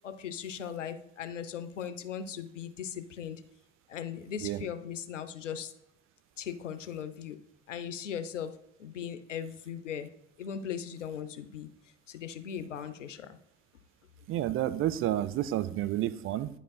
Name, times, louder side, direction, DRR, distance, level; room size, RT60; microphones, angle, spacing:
voice 1, 0.0-3.4 3.9-5.7 6.4-7.4 7.7-8.5 8.8-10.1 10.4-11.7 12.1-13.4, left 8 dB, 90° left, 12 dB, 0.5 m, -38 dB
voice 2, 14.3-16.5, right 13 dB, 35° right, 14 dB, 0.5 m, -30 dB
9.6 x 5.1 x 2.3 m, 0.81 s
figure-of-eight pair, 65°, 36 cm